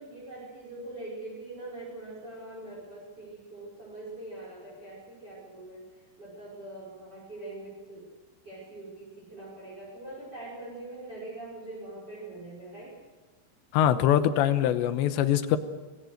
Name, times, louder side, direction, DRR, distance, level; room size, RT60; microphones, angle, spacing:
voice 1, 0.0-8.1 8.4-13.0, right 2 dB, 20° right, -5 dB, 5.5 m, -43 dB
voice 2, 13.7-15.6, left 10 dB, 75° left, 11 dB, 3.0 m, -23 dB
25.0 x 20.0 x 6.6 m, 1.3 s
omnidirectional pair, 5.5 m